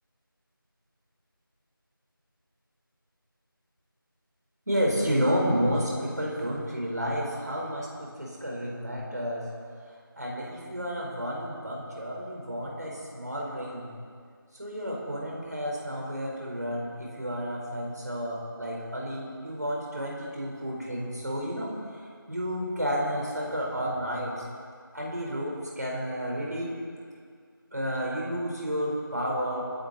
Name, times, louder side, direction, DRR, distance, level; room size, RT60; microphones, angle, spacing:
voice 1, 4.7-9.5 10.2-13.9 14.5-24.4 24.9-26.7 27.7-29.6, equal, 50° right, -3 dB, 4.3 m, -31 dB
28.5 x 10.5 x 4.2 m, 2.1 s
figure-of-eight pair, 175°, 12 cm